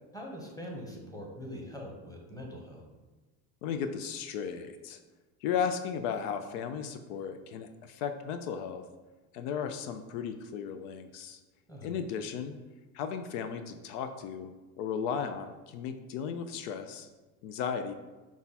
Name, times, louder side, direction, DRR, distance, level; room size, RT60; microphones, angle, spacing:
voice 1, 0.1-2.8 11.7-11.9, equal, 10° left, 0 dB, 0.9 m, -43 dB
voice 2, 3.6-5.0 5.4-8.8 9.3-11.4 11.8-12.6 12.9-14.5 14.8-17.1 17.4-17.9, left 7 dB, 80° left, 8 dB, 0.5 m, -35 dB
5.5 x 2.4 x 4.0 m, 1.2 s
supercardioid pair, 100°, 46 cm